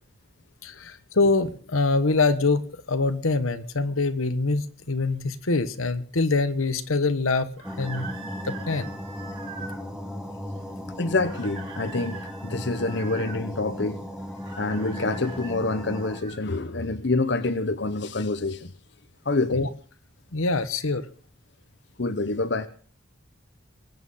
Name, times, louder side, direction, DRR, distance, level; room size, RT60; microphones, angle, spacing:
voice 1, 0.6-2.6 2.9-7.5 7.8-8.1 8.4-8.9 19.5-19.7 20.3-21.0, left 3 dB, 85° left, 11 dB, 1.2 m, -24 dB
sound 1, 7.6-16.2, left 1 dB, 5° right, 1.7 m, -36 dB
sound 2, 7.6-9.8 11.2-13.4 14.4-16.4, right 4 dB, 25° right, 4.0 m, -43 dB
voice 2, 11.0-14.0 14.5-18.7 19.2-19.6 22.0-22.7, left 3 dB, 55° left, 11 dB, 0.9 m, -27 dB
22.0 x 9.0 x 5.6 m, 0.44 s
head